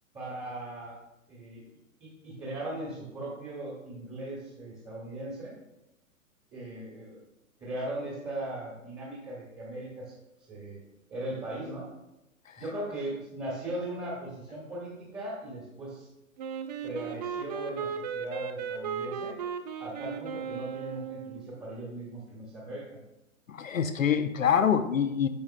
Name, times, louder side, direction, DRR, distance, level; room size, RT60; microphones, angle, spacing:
voice 1, 0.1-0.9 1.3-1.6 2.0-5.6 6.5-7.2 7.6-10.2 10.5-10.8 11.1-11.9 12.5-16.1 16.8-19.4 19.8-23.0, right 1 dB, 15° right, -5 dB, 1.6 m, -38 dB
Wind instrument woodwind instrument, 16.4-21.5, right 6 dB, 30° right, 0.5 m, -36 dB
voice 2, 23.5-25.3, left 8 dB, 70° left, 8 dB, 0.7 m, -25 dB
11.0 x 6.9 x 2.2 m, 0.94 s
figure-of-eight pair, 110°, 41 cm